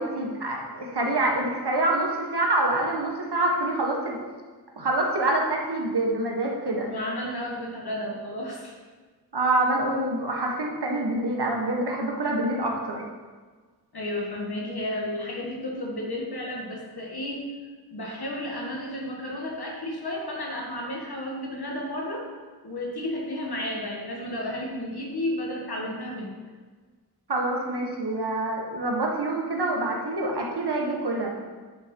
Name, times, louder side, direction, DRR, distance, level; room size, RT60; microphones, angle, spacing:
voice 1, 0.0-4.2 4.8-6.9 9.3-13.0 27.3-31.3, right 2 dB, 80° right, -1 dB, 1.5 m, -26 dB
voice 2, 6.8-8.7 13.9-17.4 17.9-22.3 22.6-26.4, left 1 dB, 70° left, -1 dB, 1.8 m, -32 dB
9.6 x 4.4 x 5.3 m, 1.4 s
wide cardioid pair, 50°, 40 cm